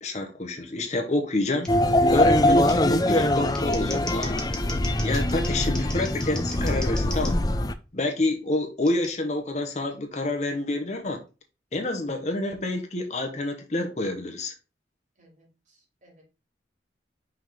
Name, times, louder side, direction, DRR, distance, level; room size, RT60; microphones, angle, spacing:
voice 1, 0.0-1.7 2.1-4.3 5.0-7.4 7.9-11.2 11.7-14.5, left 2 dB, 40° left, 0.9 m, -28 dB
Scissors, 1.6-1.7 2.7-2.8 3.4-7.3 8.9-9.1, left 1 dB, 5° left, 1.2 m, -39 dB
sound 1, 1.7-7.7, left 1 dB, 20° left, 0.5 m, -23 dB
voice 2, 15.2-16.2, equal, 45° right, 3.2 m, -58 dB
5.8 x 3.6 x 4.9 m
head